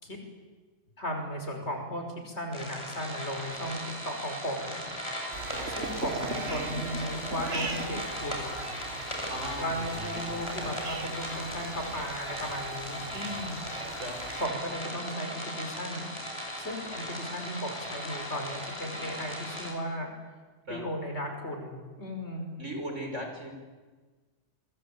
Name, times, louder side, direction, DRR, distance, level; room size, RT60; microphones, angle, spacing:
voice 1, 1.0-3.8 4.0-4.8 5.8-8.5 9.6-13.6 14.4-16.1 16.6-20.1 20.7-22.4, equal, 65° left, 4 dB, 5.8 m, -36 dB
sound 1, 2.5-19.7, equal, 25° left, 6.8 m, -38 dB
sound 2, 5.3-14.4, right 3 dB, 60° right, 2.2 m, -39 dB
voice 2, 9.3-10.4 10.6-10.7 13.9-14.2 20.7-20.8 22.6-23.5, equal, 85° right, 3 dB, 6.0 m, -38 dB
28.0 x 22.0 x 8.8 m, 1.4 s
omnidirectional pair, 1.2 m